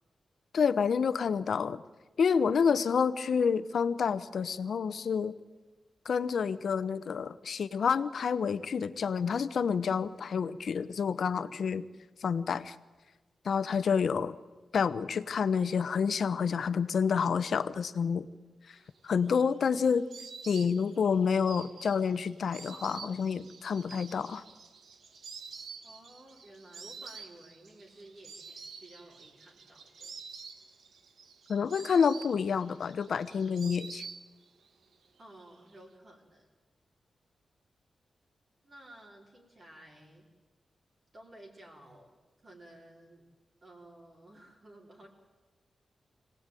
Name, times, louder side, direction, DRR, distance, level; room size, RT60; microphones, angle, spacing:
voice 1, 0.5-1.8 2.2-5.3 6.0-11.9 12.2-12.8 13.4-14.3 14.7-18.3 18.7-18.8 19.0-20.0 20.5-24.4 31.5-34.0, left 6 dB, 65° left, 14 dB, 0.9 m, -28 dB
Insect, 19.0-34.7 34.9-35.7, right 5 dB, 90° right, 1.8 m, -48 dB
voice 2, 25.8-30.2 35.2-36.5 38.6-40.2 41.1-42.1 42.4-43.2 43.6-45.1, right 1 dB, 40° right, -2 dB, 4.1 m, -54 dB
25.5 x 18.0 x 9.1 m, 1.3 s
wide cardioid pair, 140°, 0 cm